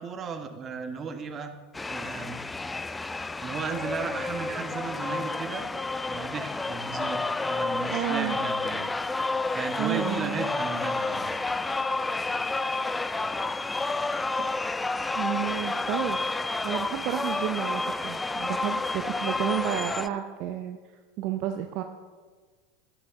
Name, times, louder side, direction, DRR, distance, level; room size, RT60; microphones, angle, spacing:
voice 1, 0.0-1.6 1.9-2.4 3.4-5.6 6.0-8.9 9.5-11.3, right 5 dB, 30° right, 6 dB, 1.1 m, -35 dB
sound 1, 1.7-20.1, left 3 dB, 10° left, 0.3 m, -30 dB
voice 2, 7.9-8.4 9.8-10.5 14.4-14.5 15.1-16.2 16.6-20.8 21.2-21.8, right 11 dB, 55° right, 7 dB, 0.6 m, -31 dB
11.5 x 10.0 x 3.6 m, 1.4 s
hypercardioid pair, 90°, 0 cm